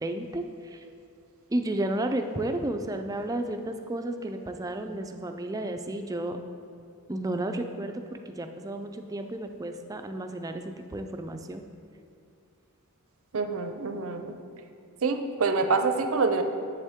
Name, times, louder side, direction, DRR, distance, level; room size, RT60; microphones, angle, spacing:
voice 1, 0.0-0.8 1.5-6.4 7.1-11.6, right 1 dB, 15° right, 6 dB, 0.3 m, -32 dB
voice 2, 13.3-14.4 15.0-16.4, right 4 dB, 65° right, 7 dB, 0.6 m, -26 dB
8.1 x 7.1 x 3.6 m, 2.4 s
head